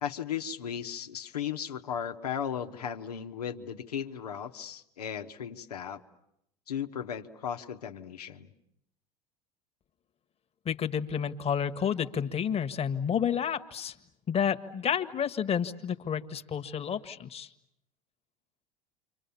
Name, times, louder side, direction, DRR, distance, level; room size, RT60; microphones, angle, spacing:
voice 1, 0.0-6.0 6.7-8.5, left 8 dB, 85° left, 4 dB, 1.3 m, -36 dB
voice 2, 10.6-13.9 14.3-17.5, left 8 dB, 30° left, 9 dB, 1.6 m, -30 dB
29.0 x 26.0 x 7.1 m, 0.78 s
hypercardioid pair, 80°, 19 cm